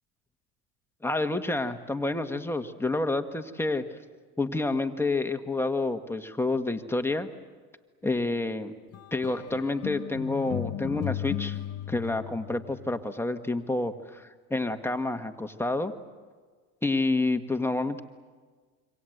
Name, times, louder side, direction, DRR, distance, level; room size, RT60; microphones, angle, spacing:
voice 1, 1.0-3.8 4.4-7.3 8.0-8.7 9.1-11.6 11.9-15.9 16.8-18.0, left 2 dB, 10° left, 7 dB, 1.6 m, -29 dB
sound 1, 8.9-13.0, left 13 dB, 50° left, 0.9 m, -35 dB
27.0 x 25.0 x 8.0 m, 1.5 s
supercardioid pair, 95°, 31 cm